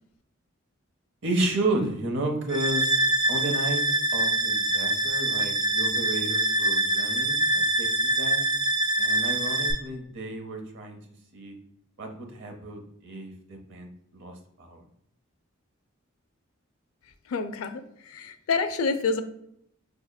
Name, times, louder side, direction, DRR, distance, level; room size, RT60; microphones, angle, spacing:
voice 1, 1.2-3.0 3.3-3.8 4.1-7.9 8.2-8.4 9.0-11.0 11.3-11.6 12.0-14.8, right 2 dB, 60° right, 4 dB, 0.7 m, -32 dB
sound 1, 2.5-9.7, right 1 dB, 20° right, 0.5 m, -25 dB
voice 2, 17.3-19.2, left 4 dB, 85° left, 9 dB, 0.4 m, -28 dB
4.9 x 2.8 x 2.2 m, 0.74 s
head